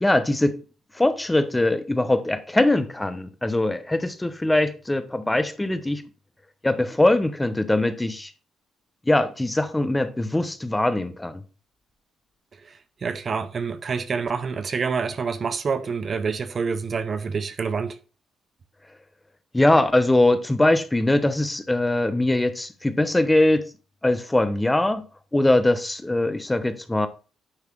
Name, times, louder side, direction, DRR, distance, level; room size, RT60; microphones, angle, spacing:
voice 1, 0.0-0.6 1.0-6.0 6.6-8.3 9.1-11.4 19.5-23.6 24.0-25.0 25.3-27.1, left 1 dB, 10° left, 1.0 m, -21 dB
voice 2, 12.6-18.0, right 5 dB, 45° right, 0.7 m, -27 dB
9.8 x 3.3 x 6.0 m
cardioid pair, 90°, 0 cm